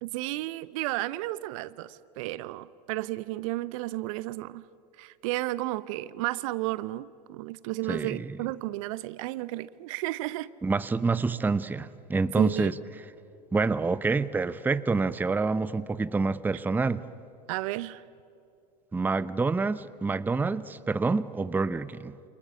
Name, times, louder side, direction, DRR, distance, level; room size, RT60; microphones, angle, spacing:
voice 1, 0.0-4.6 5.0-10.5 12.4-12.7 17.5-18.0, right 18 dB, 55° right, 0.8 m, -33 dB
voice 2, 7.9-8.3 10.6-12.7 13.5-17.0 18.9-22.2, right 4 dB, 10° right, 0.7 m, -27 dB
28.5 x 27.5 x 7.1 m
figure-of-eight pair, 85°, 21 cm